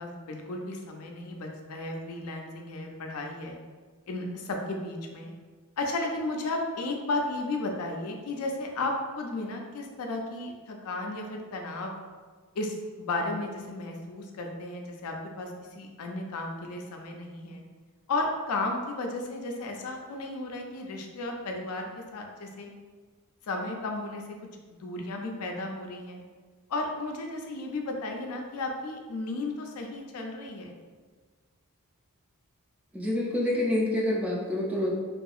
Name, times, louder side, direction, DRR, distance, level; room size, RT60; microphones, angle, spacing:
voice 1, 0.0-3.6 4.1-5.3 5.8-12.0 12.5-17.6 18.1-22.7 23.4-24.4 24.7-26.2 26.7-30.8, left 2 dB, 75° left, 2 dB, 0.4 m, -34 dB
voice 2, 32.9-34.9, left 1 dB, 5° right, -4 dB, 0.4 m, -27 dB
2.7 x 2.4 x 2.3 m, 1.5 s
head